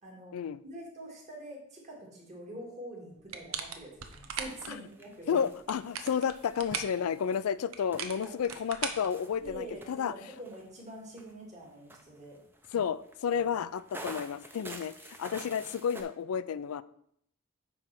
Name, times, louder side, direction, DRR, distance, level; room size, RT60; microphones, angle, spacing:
voice 1, 0.0-5.4 8.1-8.3 9.4-12.4 13.3-13.4 14.0-14.2, right 1 dB, 30° right, 2.2 m, -46 dB
sound 1, 3.3-4.7 5.5-7.0 7.7-9.7, right 6 dB, 75° right, 0.8 m, -39 dB
sound 2, 4.4-16.0, right 1 dB, 10° right, 0.6 m, -49 dB
voice 2, 5.3-10.1 12.7-16.8, left 7 dB, 90° left, 0.4 m, -31 dB
9.3 x 3.3 x 5.9 m
head